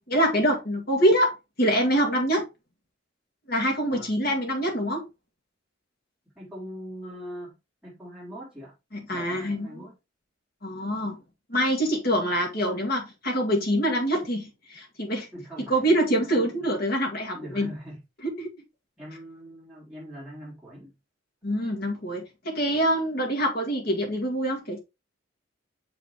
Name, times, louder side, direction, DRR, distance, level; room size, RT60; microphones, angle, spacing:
voice 1, 0.1-1.3 1.6-2.4 3.5-5.0 8.9-9.8 10.6-11.2 11.5-15.3 15.7-17.7 18.4-18.5 21.4-24.8, equal, 50° left, 2.1 m, -25 dB
voice 2, 6.4-7.5 7.8-8.8 9.1-10.0 15.3-15.9 16.3-16.7 17.3-18.0 19.0-21.0 22.7-22.9, equal, 5° right, 3.6 m, -42 dB
6.9 x 5.2 x 3.0 m
head